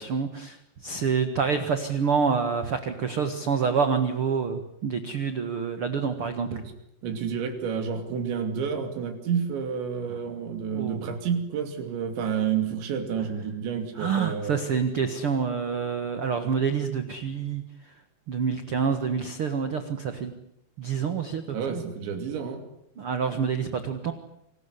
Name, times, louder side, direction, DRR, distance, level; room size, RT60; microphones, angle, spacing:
voice 1, 0.0-6.6 10.7-11.0 13.9-17.6 18.3-20.3 20.8-21.8 23.0-24.1, right 6 dB, 65° right, 8 dB, 1.3 m, -27 dB
voice 2, 7.0-14.5 21.5-22.6, right 7 dB, 85° right, 6 dB, 5.0 m, -30 dB
26.5 x 20.0 x 9.8 m, 0.77 s
omnidirectional pair, 5.1 m